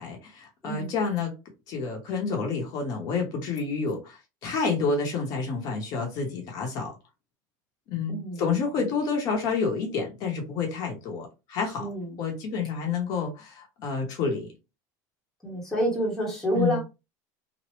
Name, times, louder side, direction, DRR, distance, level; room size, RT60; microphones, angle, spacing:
voice 1, 0.0-1.3 1.7-7.0 7.9-11.9 12.2-14.5 16.5-16.8, left 5 dB, 40° left, 0.9 m, -29 dB
voice 2, 8.1-8.4 11.8-12.1 15.4-16.8, right 1 dB, 5° left, 0.9 m, -28 dB
3.0 x 2.0 x 3.1 m
cardioid pair, 165°, 9 cm